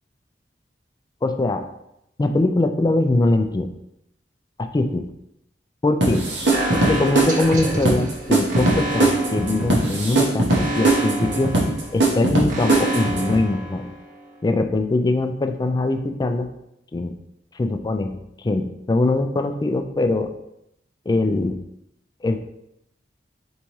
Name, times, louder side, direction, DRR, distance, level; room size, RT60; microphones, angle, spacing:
voice 1, 1.2-1.6 2.2-3.7 4.6-5.0 5.8-6.2 6.7-11.6 11.9-13.9 14.4-16.5 16.9-17.1 17.6-18.2 18.4-20.3 21.1-21.6 22.2-22.4, left 2 dB, 20° left, 7 dB, 0.3 m, -22 dB
sound 1, 6.0-13.4, right 2 dB, 75° right, 1.0 m, -20 dB
Alarm, 6.5-14.3, right 1 dB, 45° right, 0.7 m, -29 dB
4.1 x 3.5 x 3.0 m, 0.81 s
head